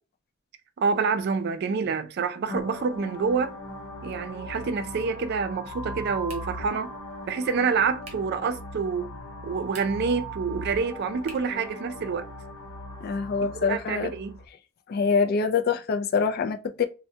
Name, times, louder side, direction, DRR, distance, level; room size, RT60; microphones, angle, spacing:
voice 1, 0.8-3.6 4.0-6.9 7.3-9.1 9.4-12.3 13.4-14.4, right 5 dB, 50° right, 0.3 m, -27 dB
sound 1, 2.5-14.4, equal, 80° left, 0.7 m, -39 dB
sound 2, 6.2-6.7 8.0-8.4 9.6-10.2 11.2-11.6, right 3 dB, 30° right, 0.8 m, -47 dB
voice 2, 13.0-14.1 14.9-16.9, left 5 dB, 50° left, 0.3 m, -25 dB
3.2 x 2.1 x 2.7 m
head